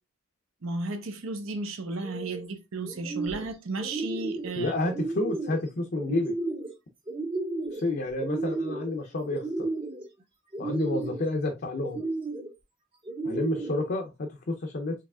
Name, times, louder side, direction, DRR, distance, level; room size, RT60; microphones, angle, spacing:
voice 1, 0.6-4.7 13.3-13.4, right 3 dB, 75° right, 0.8 m, -34 dB
sound 1, 1.9-2.4 2.8-3.5 3.8-4.5 4.9-5.6 6.0-6.7 7.1-7.9 8.2-8.9 9.3-10.0 10.5-11.3 11.8-12.5 13.0-13.8, right 2 dB, 25° right, 0.7 m, -33 dB
voice 2, 4.6-6.3 7.7-9.7 10.6-12.0 13.2-14.9, left 2 dB, 45° left, 0.5 m, -30 dB
4.7 x 3.0 x 2.3 m
head